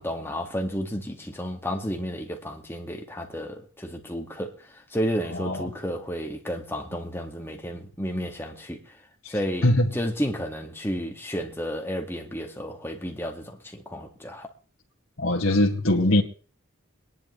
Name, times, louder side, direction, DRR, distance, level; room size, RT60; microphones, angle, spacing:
voice 1, 0.0-8.8 9.3-14.5, equal, 10° left, 2.0 m, -32 dB
voice 2, 15.2-16.2, left 1 dB, 70° left, 2.0 m, -21 dB
24.5 x 10.5 x 3.3 m
head